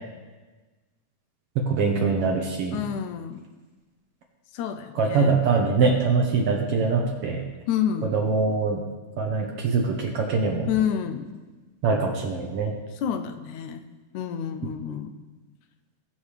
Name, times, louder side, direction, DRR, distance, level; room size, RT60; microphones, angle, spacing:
voice 1, 1.6-2.8 5.0-7.4 8.1-8.8 9.2-10.7 11.8-12.7, right 4 dB, 60° right, 1 dB, 1.8 m, -23 dB
voice 2, 2.7-3.5 4.5-5.4 7.7-8.1 10.7-11.3 13.0-13.8 14.1-15.2, left 9 dB, 85° left, 8 dB, 2.1 m, -29 dB
19.5 x 7.3 x 3.4 m, 1.2 s
omnidirectional pair, 3.5 m